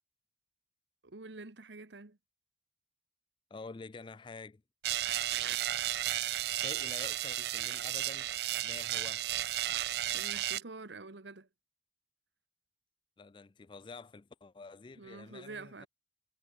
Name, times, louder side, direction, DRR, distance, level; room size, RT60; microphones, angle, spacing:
voice 1, 1.0-2.2 10.1-11.5 15.0-15.9, right 3 dB, 90° right, 1.4 m, -47 dB
voice 2, 3.5-4.6 6.4-8.3 8.6-9.2 13.2-15.9, left 4 dB, 25° left, 0.4 m, -48 dB
sound 1, 4.8-10.6, right 13 dB, 65° right, 0.4 m, -33 dB
head